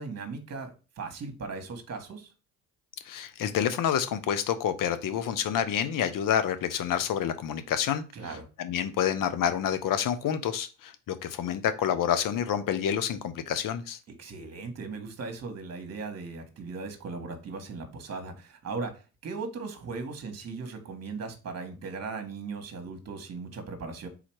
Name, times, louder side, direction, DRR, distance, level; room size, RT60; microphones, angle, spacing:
voice 1, 0.0-2.3 8.1-8.5 14.1-24.1, right 4 dB, 40° right, 7 dB, 1.4 m, -38 dB
voice 2, 3.0-8.0 8.6-14.0, left 9 dB, 60° left, 11 dB, 0.8 m, -28 dB
4.0 x 2.8 x 4.6 m, 0.33 s
supercardioid pair, 65°, 37 cm